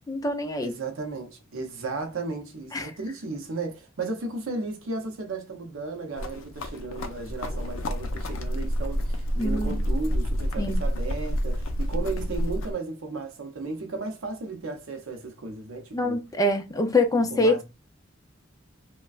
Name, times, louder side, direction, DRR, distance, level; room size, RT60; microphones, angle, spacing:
voice 1, 0.1-0.8 2.7-2.9 9.4-9.8 10.6-10.8 15.9-17.6, left 2 dB, 15° left, 0.5 m, -25 dB
voice 2, 0.6-16.2 17.3-17.6, right 3 dB, 80° right, 0.7 m, -35 dB
sound 1, 6.1-12.7, equal, 70° left, 0.5 m, -29 dB
3.2 x 2.2 x 2.4 m
head